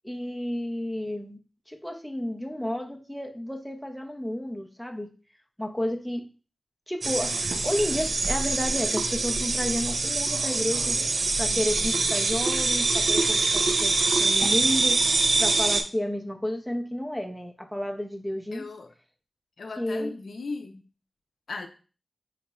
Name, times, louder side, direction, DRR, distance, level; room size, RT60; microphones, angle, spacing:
voice 1, 0.0-1.4 1.7-5.1 5.6-6.2 6.9-18.7 19.8-20.1, left 1 dB, ahead, 3 dB, 0.5 m, -31 dB
sound 1, 7.0-15.8, right 3 dB, 75° right, 0.4 m, -24 dB
voice 2, 11.5-12.1 18.5-18.9 19.6-20.8 21.5-21.7, left 3 dB, 75° left, 5 dB, 0.4 m, -38 dB
3.9 x 3.0 x 2.3 m, 0.36 s
cardioid pair, 65°, 0 cm